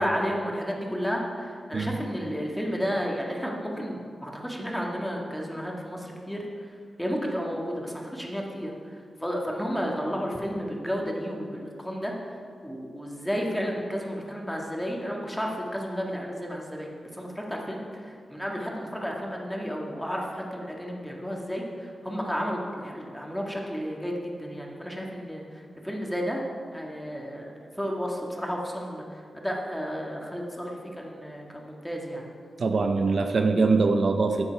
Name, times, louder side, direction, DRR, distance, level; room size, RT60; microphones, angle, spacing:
voice 1, 0.0-6.4 7.0-8.7 9.2-12.1 12.6-26.4 26.7-29.0 29.3-32.3, equal, 5° left, -1 dB, 1.8 m, -32 dB
voice 2, 32.6-34.5, right 3 dB, 60° right, 5 dB, 0.6 m, -23 dB
12.5 x 8.8 x 4.6 m, 2.2 s
wide cardioid pair, 100°, 0 cm